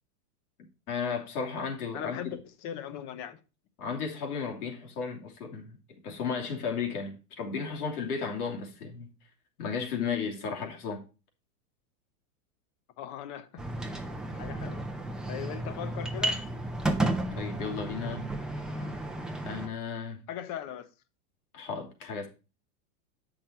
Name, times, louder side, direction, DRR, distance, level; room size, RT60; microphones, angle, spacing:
voice 1, 0.9-2.2 3.8-9.1 9.6-11.0 17.4-18.3 19.4-20.2 21.5-22.3, left 5 dB, 80° left, 3.0 m, -34 dB
voice 2, 1.9-3.4 13.0-14.0 14.3-14.9 15.3-16.4 18.7-19.0 20.3-20.9, left 10 dB, 40° left, 1.0 m, -40 dB
sound 1, 13.6-19.7, right 1 dB, ahead, 0.6 m, -33 dB
8.0 x 6.0 x 4.5 m
supercardioid pair, 140°, 45 cm